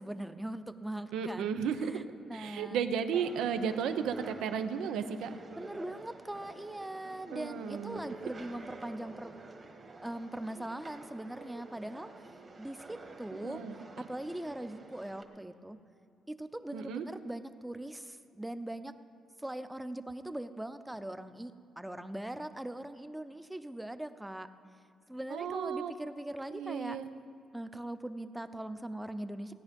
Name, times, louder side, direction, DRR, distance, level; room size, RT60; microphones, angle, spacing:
voice 1, 0.0-2.9 5.6-9.3 10.0-12.3 12.6-13.6 14.0-15.8 16.3-19.0 19.4-24.5 25.1-27.0 27.5-29.5, right 1 dB, 10° right, 11 dB, 0.7 m, -41 dB
voice 2, 1.1-1.9 2.3-5.4 7.3-8.0 13.4-13.8 16.7-17.0 25.3-25.9 26.5-27.1, right 7 dB, 85° right, 9 dB, 0.8 m, -34 dB
sound 1, 3.1-15.2, right 3 dB, 35° right, 1.6 m, -49 dB
16.5 x 10.0 x 5.3 m, 2.5 s
cardioid pair, 90°, 0 cm